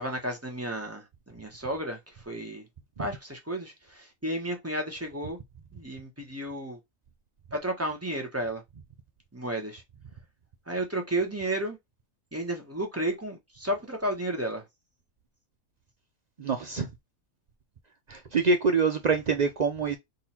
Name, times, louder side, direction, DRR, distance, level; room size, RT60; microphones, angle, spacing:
voice 1, 0.0-2.7 3.0-5.4 5.7-6.8 7.5-8.6 9.3-9.8 10.7-11.8 12.3-14.6, right 1 dB, 10° right, 1.1 m, -32 dB
voice 2, 16.4-16.9 18.1-20.0, right 4 dB, 65° right, 0.4 m, -25 dB
4.0 x 2.7 x 4.4 m
omnidirectional pair, 1.5 m